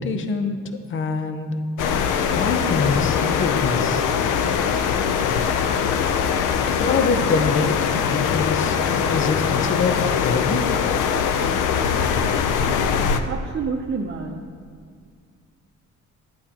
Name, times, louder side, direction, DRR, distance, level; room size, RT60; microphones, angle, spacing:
voice 1, 0.0-1.6 2.3-4.1 6.8-7.8 8.1-8.8 9.1-10.7, left 4 dB, 40° left, 8 dB, 0.7 m, -25 dB
sound 1, 1.8-13.2, left 7 dB, 85° left, 0.6 m, -22 dB
voice 2, 13.3-14.5, right 5 dB, 45° right, 0 dB, 0.7 m, -28 dB
11.0 x 9.0 x 2.9 m, 2.1 s
cardioid pair, 90°, 30 cm